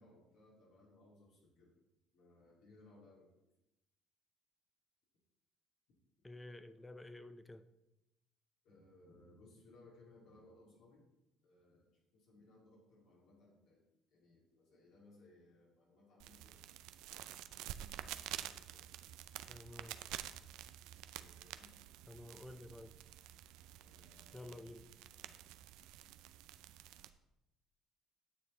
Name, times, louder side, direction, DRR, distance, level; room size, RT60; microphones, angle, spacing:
voice 1, 0.0-1.7 2.1-3.3 8.6-11.1 11.4-13.8 14.1-16.6 17.5-18.9 21.1-21.8 23.8-25.4, left 2 dB, 75° left, -4 dB, 2.9 m, -64 dB
voice 2, 6.2-7.6 19.5-20.0 22.1-22.9 24.3-24.8, left 1 dB, 10° left, 12 dB, 0.6 m, -51 dB
sound 1, 16.2-27.1, right 13 dB, 80° right, 0.4 m, -49 dB
9.7 x 6.7 x 4.0 m, 0.92 s
supercardioid pair, 90°, 0 cm